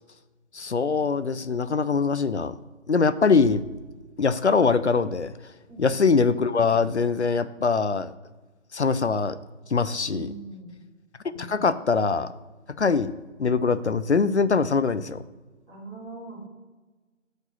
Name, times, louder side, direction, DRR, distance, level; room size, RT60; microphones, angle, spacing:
voice 1, 0.5-2.5 2.9-3.6 4.2-5.3 5.8-8.1 8.7-9.4 9.7-10.3 11.4-12.3 12.8-13.1 13.4-15.2, left 5 dB, 60° left, 14 dB, 0.6 m, -23 dB
sound 1, 3.4-5.2, equal, 45° right, 1.7 m, -49 dB
voice 2, 5.7-6.0 10.0-10.7 11.3-11.7 15.7-16.5, right 3 dB, 5° right, -17 dB, 2.6 m, -42 dB
8.0 x 5.3 x 7.5 m, 1.3 s
figure-of-eight pair, 175°, 38 cm